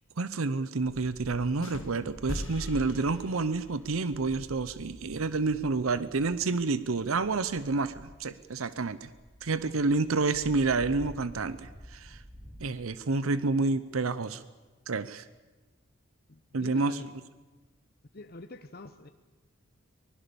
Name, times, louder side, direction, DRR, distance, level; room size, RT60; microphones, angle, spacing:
voice 1, 0.2-9.1 9.4-12.2 12.6-14.4 14.9-15.3 16.5-17.0, right 3 dB, 85° right, 15 dB, 0.8 m, -29 dB
sound 1, 1.6-3.8, left 1 dB, 70° left, 2.2 m, -39 dB
sound 2, 2.8-12.9, equal, 40° right, 6.1 m, -50 dB
voice 2, 16.3-17.1 18.1-19.1, left 2 dB, 45° left, 8 dB, 0.9 m, -45 dB
24.5 x 20.5 x 7.0 m, 1.3 s
head